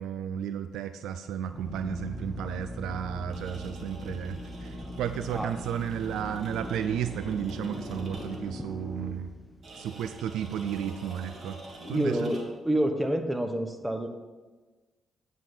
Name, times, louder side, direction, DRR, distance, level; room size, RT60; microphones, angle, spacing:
voice 1, 0.0-9.3 9.8-11.6 11.9-12.3, right 9 dB, 70° right, 10 dB, 0.3 m, -33 dB
Drill, 1.4-10.1, left 1 dB, 15° left, 1.0 m, -40 dB
sound 1, 3.2-8.6 9.6-12.7, right 2 dB, 50° right, 1.6 m, -47 dB
voice 2, 11.8-14.1, right 1 dB, 10° right, 6 dB, 1.1 m, -28 dB
8.7 x 4.3 x 6.9 m, 1.3 s
hypercardioid pair, 40°, 0 cm